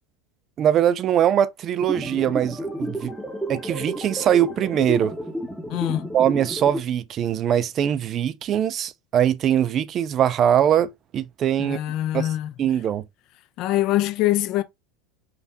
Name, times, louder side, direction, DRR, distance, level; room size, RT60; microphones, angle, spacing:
voice 1, 0.6-3.1 3.5-5.1 6.1-11.8 12.1-12.3 12.6-13.0, right 10 dB, 40° right, 0.3 m, -22 dB
sound 1, 1.8-6.8, right 1 dB, 5° right, 0.7 m, -31 dB
voice 2, 5.7-6.1 11.6-12.5 13.6-14.6, left 14 dB, 55° left, 0.4 m, -24 dB
3.3 x 2.3 x 2.7 m
hypercardioid pair, 90°, 0 cm